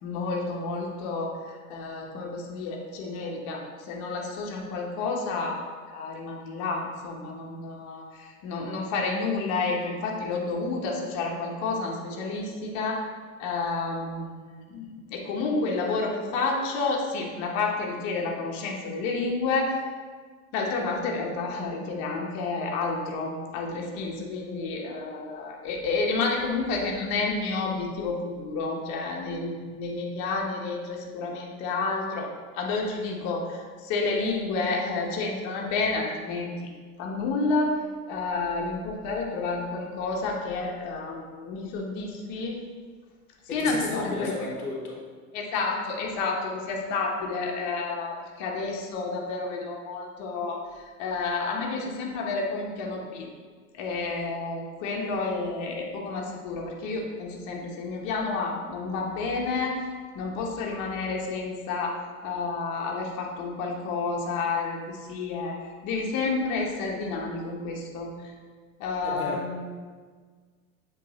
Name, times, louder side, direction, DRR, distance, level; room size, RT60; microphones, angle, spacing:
voice 1, 0.0-5.6 5.9-13.1 13.4-19.8 20.5-32.3 32.5-36.7 37.0-37.8 38.1-42.6 43.5-44.3 45.3-53.3 53.7-59.7 60.1-62.0 62.2-68.3 68.8-69.6, left 3 dB, 40° left, -1 dB, 1.1 m, -30 dB
voice 2, 43.6-45.0 69.0-69.4, left 2 dB, 80° left, -1 dB, 1.0 m, -33 dB
7.5 x 3.2 x 4.0 m, 1.5 s
figure-of-eight pair, 75°, 43 cm